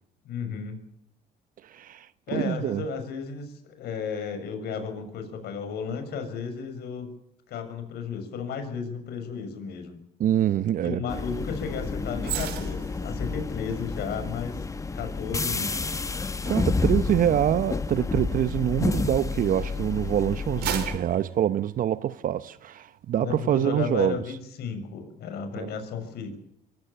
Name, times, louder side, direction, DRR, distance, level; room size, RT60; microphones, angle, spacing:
voice 1, 0.2-0.8 2.3-7.1 7.5-10.0 10.8-14.6 14.9-15.9 23.2-26.4, left 6 dB, 75° left, 6.8 m, -34 dB
voice 2, 1.6-2.1 2.3-2.8 10.2-11.0 16.4-24.2 25.6-25.7, right 11 dB, 55° right, 0.8 m, -25 dB
sound 1, 11.1-21.0, left 4 dB, 20° left, 1.1 m, -30 dB
sound 2, 12.2-19.6 20.1-22.4 22.8-23.0, right 10 dB, 80° right, 5.6 m, -39 dB
24.0 x 16.5 x 8.9 m
cardioid pair, 110°, 17 cm